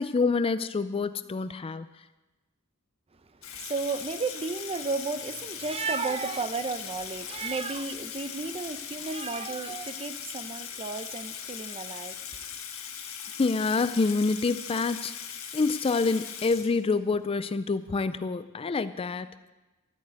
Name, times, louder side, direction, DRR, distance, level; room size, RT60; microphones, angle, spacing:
voice 1, 0.0-1.9 13.4-15.1 15.5-19.3, left 4 dB, 25° left, 13 dB, 0.4 m, -27 dB
Water tap faucet / Sink (filling or washing), 3.4-17.2, left 8 dB, 70° left, 1.6 m, -40 dB
voice 2, 3.6-12.2, right 4 dB, 30° right, 11 dB, 0.7 m, -33 dB
13.0 x 9.2 x 8.1 m, 1.1 s
head